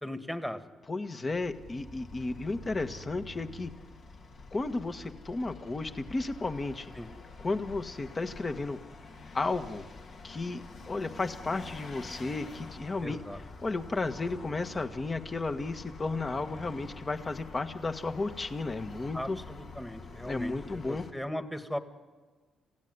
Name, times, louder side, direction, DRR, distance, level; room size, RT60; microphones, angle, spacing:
voice 1, 0.0-0.6 7.0-7.1 13.0-13.4 19.1-21.8, left 1 dB, 5° left, 8 dB, 1.9 m, -38 dB
voice 2, 0.9-3.7 4.5-6.9 7.4-8.8 9.3-9.8 10.2-19.4 20.2-21.0, left 3 dB, 30° left, 8 dB, 1.5 m, -33 dB
Vehicle, 1.3-21.1, left 3 dB, 55° left, 2.6 m, -47 dB
28.0 x 16.0 x 9.7 m, 1.4 s
cardioid pair, 90°, 0 cm